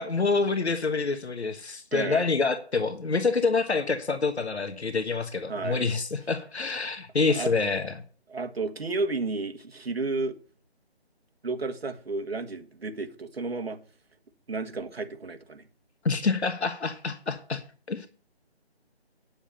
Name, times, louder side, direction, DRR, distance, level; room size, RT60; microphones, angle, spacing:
voice 1, 0.0-8.0 16.0-17.6 17.9-18.1, left 4 dB, 80° left, 1.4 m, -27 dB
voice 2, 1.9-2.2 5.5-5.8 7.3-7.5 8.3-10.4 11.4-13.8 14.5-15.6, right 3 dB, 65° right, 1.7 m, -32 dB
9.9 x 7.1 x 5.6 m
figure-of-eight pair, 175°, 33 cm